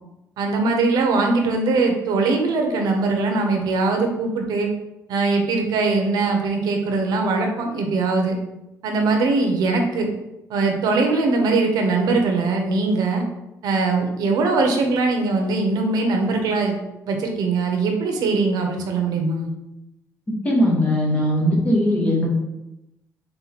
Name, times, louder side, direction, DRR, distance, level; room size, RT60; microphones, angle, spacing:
voice 1, 0.4-4.7 5.1-8.3 8.8-10.1 10.5-13.2 13.6-16.8 17.1-19.5, right 3 dB, 80° right, 3 dB, 0.7 m, -21 dB
voice 2, 20.4-22.3, equal, 20° left, -3 dB, 1.0 m, -19 dB
3.7 x 3.0 x 4.0 m, 0.92 s
cardioid pair, 170°, 7 cm